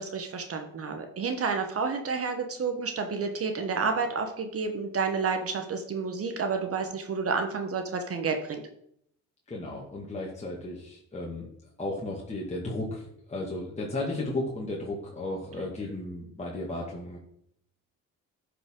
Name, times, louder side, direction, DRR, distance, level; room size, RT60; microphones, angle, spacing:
voice 1, 0.0-8.6, right 5 dB, 50° right, 6 dB, 1.1 m, -30 dB
voice 2, 9.5-11.5 11.8-17.2, left 2 dB, 20° left, -3 dB, 1.9 m, -34 dB
11.5 x 4.9 x 3.7 m, 0.71 s
cardioid pair, 90°, 30 cm